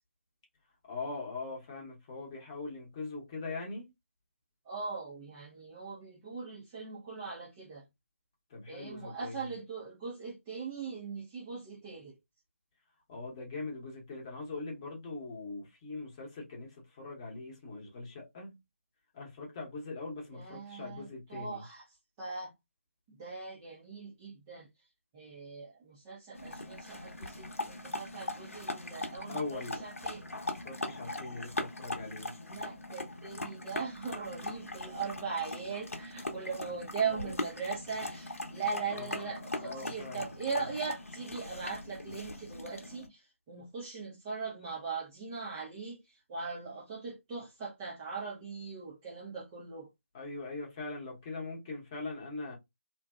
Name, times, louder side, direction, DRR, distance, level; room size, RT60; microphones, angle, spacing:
voice 1, 0.9-3.9 8.5-9.3 13.1-18.6 19.1-21.6 29.3-29.8 30.6-32.3 38.9-40.3 50.1-52.5, left 3 dB, 20° left, 0.8 m, -41 dB
voice 2, 4.6-7.9 8.7-12.2 20.3-22.5 23.1-24.9 25.1-30.3 32.4-49.9, right 5 dB, 15° right, 0.4 m, -40 dB
sound 1, 26.4-43.1, left 2 dB, 70° left, 0.7 m, -40 dB
2.6 x 2.1 x 2.3 m
figure-of-eight pair, 155°, 8 cm